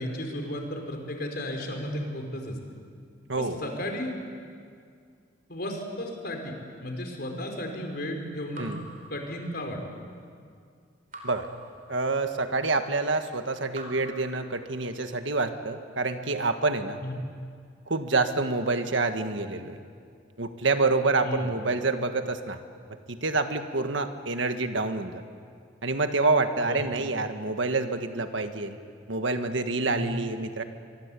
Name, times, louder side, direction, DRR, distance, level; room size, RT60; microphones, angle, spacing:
voice 1, 0.0-2.6 3.4-4.1 5.5-6.5 6.8-8.7 9.1-9.8 17.0-17.1 21.2-21.5 26.6-26.8 29.8-30.2, left 1 dB, 55° left, 3 dB, 4.5 m, -34 dB
Raindrop / Drip, 8.5-9.9 11.1-12.5 13.7-15.1, right 1 dB, 45° right, 4.0 m, -47 dB
voice 2, 11.9-17.0 17.9-19.7 20.4-22.6 23.1-25.2 25.8-28.8 29.1-30.6, right 3 dB, 75° right, 7 dB, 1.6 m, -27 dB
24.5 x 24.5 x 8.4 m, 2.2 s
head